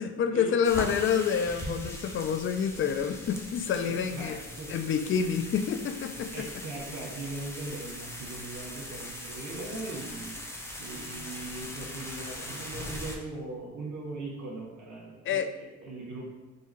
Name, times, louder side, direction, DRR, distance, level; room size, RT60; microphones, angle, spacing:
voice 1, 0.0-4.4 4.7-6.4 15.3-15.5, left 7 dB, 45° left, 8 dB, 0.4 m, -28 dB
sound 1, 0.6-13.2, left 1 dB, 10° left, 0.7 m, -40 dB
voice 2, 3.8-4.8 6.3-10.3 10.8-16.3, right 2 dB, 75° right, -2 dB, 1.5 m, -39 dB
3.6 x 2.8 x 4.3 m, 1.1 s
cardioid pair, 90°, 30 cm